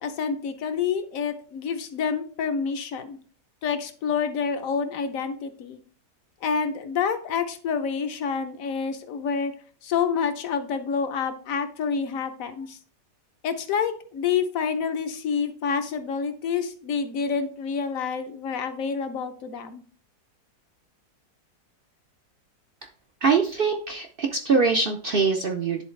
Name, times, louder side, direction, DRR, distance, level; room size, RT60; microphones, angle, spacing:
voice 1, 0.0-3.2 3.6-5.8 6.4-9.5 9.8-12.8 13.4-19.8, left 6 dB, 65° left, 9 dB, 1.1 m, -28 dB
voice 2, 23.2-25.8, right 4 dB, 60° right, 3 dB, 0.5 m, -23 dB
10.0 x 3.9 x 3.2 m, 0.43 s
omnidirectional pair, 1.7 m